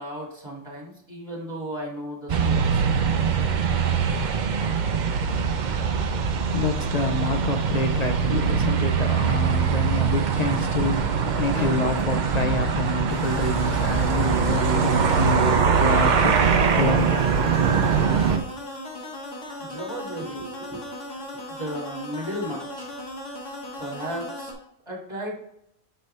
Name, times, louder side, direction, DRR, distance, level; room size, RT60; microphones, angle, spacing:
voice 1, 0.0-3.3 19.7-20.8 21.5-22.9 23.8-24.5 24.9-25.4, equal, 25° right, -3 dB, 2.2 m, -35 dB
sound 1, 2.3-18.4, right 6 dB, 50° right, 0.6 m, -22 dB
voice 2, 6.5-17.2, left 3 dB, 45° left, 4 dB, 0.6 m, -27 dB
sound 2, 13.1-24.5, left 1 dB, 85° left, 1.8 m, -37 dB
6.5 x 5.4 x 3.3 m, 0.77 s
omnidirectional pair, 1.2 m